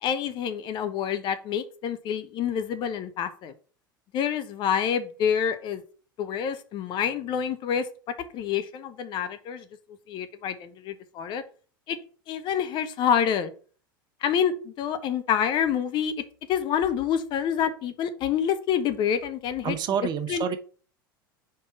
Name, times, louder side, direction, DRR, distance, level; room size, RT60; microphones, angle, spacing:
voice 1, 0.0-3.5 4.1-5.8 6.2-7.9 8.3-9.6 10.1-11.4 11.9-12.0 12.3-13.5 14.2-16.1 16.5-19.8 20.3-20.6, left 8 dB, 45° left, 10 dB, 0.8 m, -27 dB
voice 2, 19.6-20.6, right 8 dB, 40° right, 10 dB, 0.9 m, -28 dB
4.7 x 4.5 x 5.6 m, 0.40 s
figure-of-eight pair, 80°, 11 cm